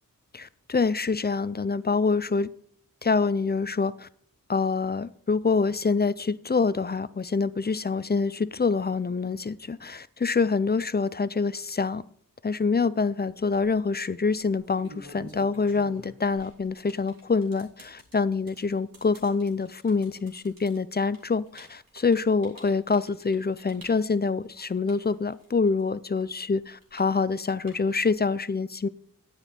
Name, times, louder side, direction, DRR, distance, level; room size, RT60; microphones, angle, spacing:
voice 1, 0.3-2.5 3.0-4.1 4.5-12.0 12.4-28.9, left 4 dB, 30° left, 17 dB, 0.5 m, -26 dB
sound 1, 13.3-13.7 14.4-25.8 26.1-28.2, right 1 dB, 80° right, 2.7 m, -49 dB
9.8 x 9.1 x 4.3 m, 0.62 s
wide cardioid pair, 70°, 35 cm